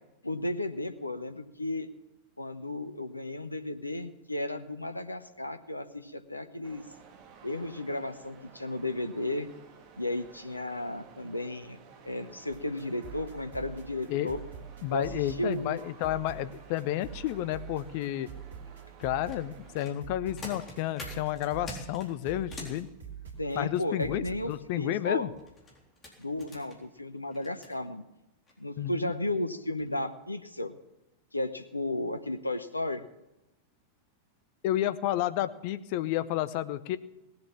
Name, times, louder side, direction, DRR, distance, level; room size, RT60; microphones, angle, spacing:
voice 1, 0.2-1.9 2.4-6.8 7.4-9.5 10.0-11.8 12.0-14.4 14.9-15.8 23.4-25.3 26.2-28.0 28.6-30.7 31.3-33.0, left 1 dB, 85° left, 9 dB, 0.9 m, -34 dB
sound 1, 6.6-19.9, right 6 dB, 40° right, 1.8 m, -54 dB
sound 2, 12.5-24.6, right 8 dB, 65° right, 2.9 m, -46 dB
voice 2, 14.8-18.3 19.0-22.9 23.5-25.3 28.8-29.1 34.6-37.0, left 13 dB, 45° left, 14 dB, 0.7 m, -31 dB
sound 3, 19.0-22.8 25.3-27.7 28.5-28.6 29.0-29.2 29.6-29.9 30.2-30.3, left 2 dB, 25° left, 3.9 m, -46 dB
18.5 x 7.8 x 7.4 m, 0.91 s
figure-of-eight pair, 90°, 0 cm